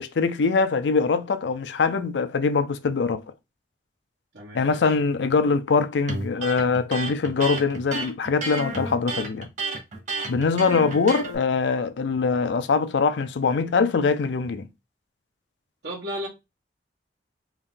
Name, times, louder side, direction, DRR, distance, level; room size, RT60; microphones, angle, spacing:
voice 1, 0.0-3.2 4.5-9.5 10.3-14.7, left 4 dB, 85° left, 0.5 m, -23 dB
voice 2, 4.3-4.8 10.6-10.9 15.8-16.3, equal, 85° right, 1.3 m, -34 dB
Electric guitar, 6.1-11.4, right 3 dB, 45° right, 1.2 m, -31 dB
3.6 x 2.6 x 3.7 m
head